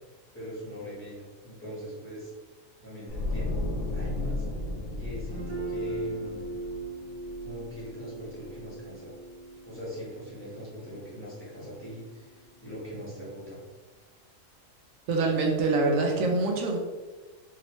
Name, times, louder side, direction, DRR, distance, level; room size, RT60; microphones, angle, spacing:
voice 1, 0.3-2.3 2.8-3.6 3.9-4.4 5.0-6.6 7.4-9.1 9.6-13.6, equal, 10° left, -10 dB, 1.1 m, -41 dB
sound 1, 3.1-8.2 8.4-8.7, left 2 dB, 75° left, 1.0 m, -34 dB
Guitar, 5.3-13.0, right 2 dB, 40° right, 1.0 m, -40 dB
voice 2, 15.1-16.8, right 3 dB, 75° right, 0 dB, 0.9 m, -25 dB
3.0 x 2.8 x 3.0 m, 1.3 s
omnidirectional pair, 1.4 m